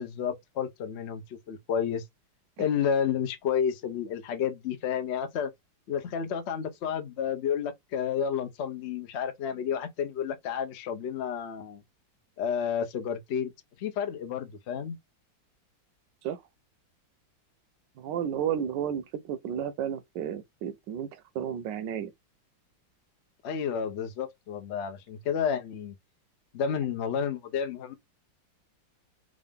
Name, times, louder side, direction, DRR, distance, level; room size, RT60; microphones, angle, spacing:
voice 1, 0.0-2.0 2.6-5.5 5.9-11.8 12.4-13.5 13.8-15.0 23.4-25.9 26.5-27.9, left 7 dB, 75° left, 0.6 m, -31 dB
voice 2, 18.0-22.1, right 9 dB, 75° right, 1.2 m, -32 dB
3.7 x 2.5 x 3.4 m
omnidirectional pair, 2.1 m